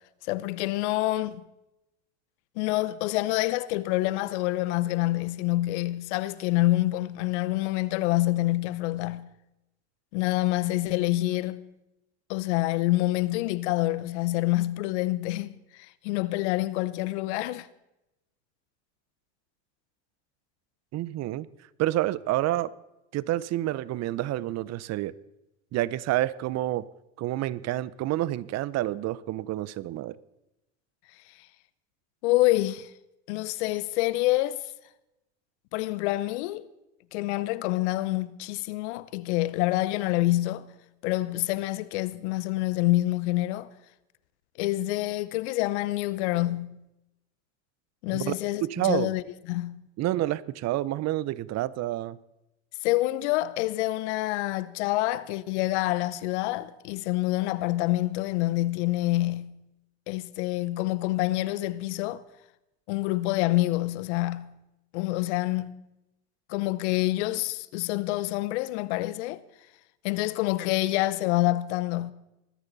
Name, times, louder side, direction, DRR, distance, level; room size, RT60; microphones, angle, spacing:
voice 1, 0.3-1.4 2.6-9.3 10.1-11.7 12.3-15.5 16.0-17.7 32.2-32.9 33.3-34.6 35.7-36.7 37.1-40.7 41.0-43.7 44.6-46.8 48.0-49.2 49.5-49.9 52.8-59.6 60.1-62.2 62.9-64.5 64.9-65.8 66.5-69.4 70.0-72.1, left 17 dB, 80° left, 0.8 m, -27 dB
voice 2, 20.9-21.5 21.8-22.7 23.1-25.1 25.7-26.9 27.2-30.2 48.2-48.4 48.6-49.1 50.0-52.2, right 15 dB, 50° right, 0.7 m, -28 dB
20.5 x 14.0 x 4.1 m
supercardioid pair, 95°, 34 cm